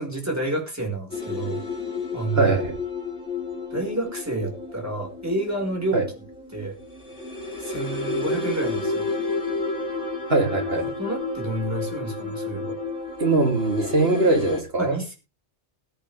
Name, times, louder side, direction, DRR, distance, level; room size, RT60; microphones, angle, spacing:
voice 1, 0.0-1.6 2.1-2.6 3.7-6.0 6.5-6.8 7.6-9.1 11.0-12.8 14.8-15.2, right 2 dB, 15° right, 5.1 m, -29 dB
sound 1, 1.1-14.6, left 3 dB, 80° left, 4.1 m, -31 dB
voice 2, 2.3-2.8 5.9-6.1 10.3-10.9 13.2-15.0, right 2 dB, 60° right, 3.5 m, -21 dB
21.0 x 8.9 x 3.5 m
omnidirectional pair, 1.2 m